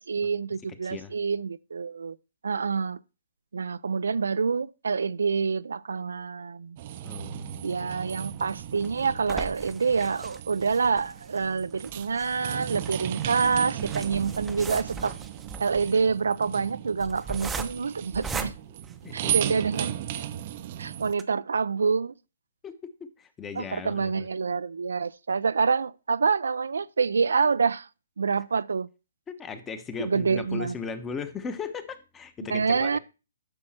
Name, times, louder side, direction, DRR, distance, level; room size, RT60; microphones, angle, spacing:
voice 1, 0.0-2.2 2.4-3.0 3.5-6.8 7.6-15.1 15.6-18.5 19.1-20.0 20.8-22.1 23.6-27.9 28.2-28.9 30.0-30.7 32.5-33.0, right 5 dB, 85° right, 0.4 m, -27 dB
voice 2, 0.8-1.1 7.0-7.7 19.0-19.5 22.6-24.3 29.3-33.0, left 6 dB, 15° left, 1.0 m, -37 dB
sound 1, 6.8-21.1, right 12 dB, 40° right, 0.6 m, -36 dB
sound 2, 8.3-19.7 20.2-20.3 20.6-20.7 21.1-21.2, right 4 dB, 10° right, 0.7 m, -39 dB
9.8 x 6.3 x 4.3 m
hypercardioid pair, 145°, 0 cm